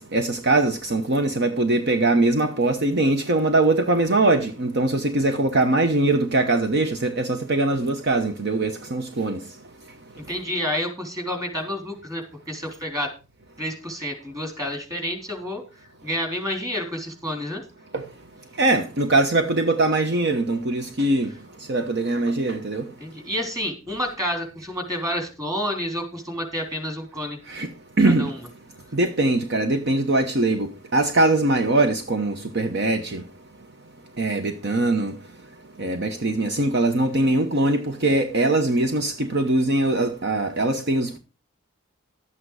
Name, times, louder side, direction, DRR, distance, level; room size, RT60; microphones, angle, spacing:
voice 1, 0.1-9.4 17.9-18.0 18.6-21.3 21.7-22.8 27.5-27.7 28.0-28.3 28.9-33.2 34.2-35.1 35.8-41.2, right 2 dB, 55° right, 1.0 m, -22 dB
voice 2, 10.3-13.1 13.6-15.6 16.0-17.6 23.0-27.4 28.0-28.4, equal, 15° right, 3.6 m, -29 dB
12.0 x 8.8 x 4.8 m
head